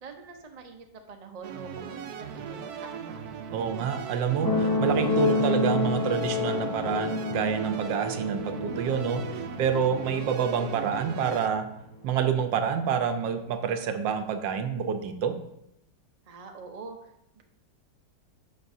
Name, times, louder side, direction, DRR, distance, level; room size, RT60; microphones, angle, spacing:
voice 1, 0.0-3.2 16.3-17.1 17.4-17.5, right 4 dB, 50° right, 3 dB, 0.4 m, -45 dB
sound 1, 1.4-11.5, right 7 dB, 70° right, 1.0 m, -39 dB
voice 2, 3.5-11.7 12.0-15.4, right 7 dB, 90° right, 8 dB, 1.4 m, -28 dB
sound 2, 4.4-11.5 12.4-12.5, left 2 dB, 25° left, 0.4 m, -29 dB
10.5 x 6.4 x 2.7 m, 0.80 s
omnidirectional pair, 1.9 m